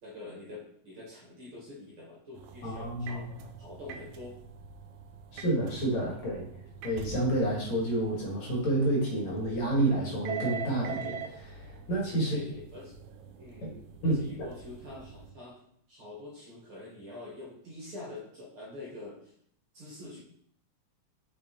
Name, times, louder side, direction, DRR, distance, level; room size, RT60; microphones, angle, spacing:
voice 1, 0.0-3.3 3.6-4.4 12.2-12.9 13.4-15.6 15.9-19.3 19.7-20.2, left 2 dB, 45° right, -4 dB, 2.7 m, -45 dB
sound 1, 2.3-15.3, right 6 dB, 75° right, 2.0 m, -44 dB
voice 2, 2.6-3.3 5.3-6.5 6.8-12.4 13.6-13.8 14.0-14.5, right 1 dB, 65° left, -3 dB, 3.1 m, -29 dB
6.1 x 5.5 x 4.3 m, 0.66 s
omnidirectional pair, 3.6 m